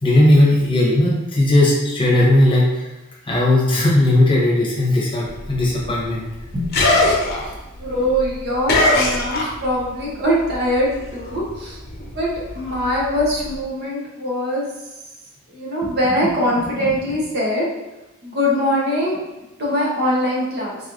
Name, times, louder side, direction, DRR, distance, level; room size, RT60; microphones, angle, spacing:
voice 1, 0.0-2.9 3.2-6.2 7.5-7.6, left 1 dB, 25° left, -5 dB, 0.9 m, -16 dB
sound 1, 5.3-10.0 10.2-13.6, left 2 dB, 50° left, 0.7 m, -22 dB
voice 2, 7.8-11.8 12.1-14.6 15.5-17.7 18.2-19.2 19.6-20.8, equal, 55° right, -4 dB, 1.0 m, -22 dB
4.1 x 3.2 x 2.6 m, 1.0 s
head